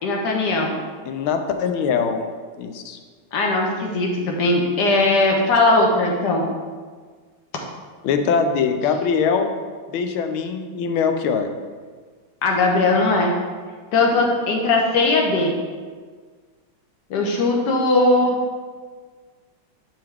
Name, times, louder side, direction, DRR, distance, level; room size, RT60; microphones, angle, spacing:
voice 1, 0.0-0.7 3.3-6.5 12.4-13.3 13.9-15.6 17.1-18.4, left 2 dB, 60° left, 0 dB, 1.6 m, -19 dB
voice 2, 1.1-2.2 2.6-3.0 8.0-9.5 9.9-11.5, left 6 dB, 80° left, 6 dB, 1.5 m, -22 dB
10.5 x 4.8 x 3.5 m, 1.5 s
omnidirectional pair, 2.3 m